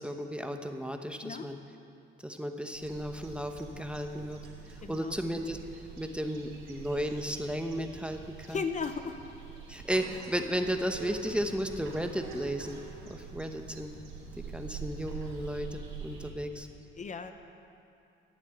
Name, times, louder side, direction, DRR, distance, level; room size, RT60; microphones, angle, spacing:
voice 1, 0.0-1.6 2.2-4.4 4.7-5.6 6.0-8.6 9.7-12.8 13.1-13.9 14.4-16.7, equal, 5° right, 5 dB, 0.9 m, -34 dB
sound 1, 2.7-16.3, right 5 dB, 80° right, 3.0 m, -45 dB
voice 2, 4.8-5.2 8.5-9.2 17.0-17.3, left 5 dB, 40° left, 8 dB, 0.8 m, -35 dB
13.5 x 7.5 x 9.1 m, 2.6 s
cardioid pair, 90°, 20 cm